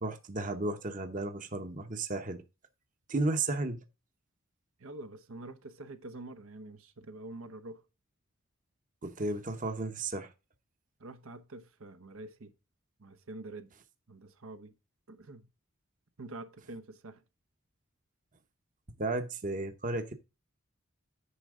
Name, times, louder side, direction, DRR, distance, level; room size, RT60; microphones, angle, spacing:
voice 1, 0.0-2.4 3.1-3.8 9.0-10.3 19.0-20.1, right 2 dB, 40° right, 0.9 m, -33 dB
voice 2, 4.8-7.8 11.0-12.5 13.0-13.7 14.1-14.7 15.1-15.5 16.2-17.2, right 2 dB, 85° right, 1.1 m, -46 dB
9.9 x 5.7 x 3.7 m
head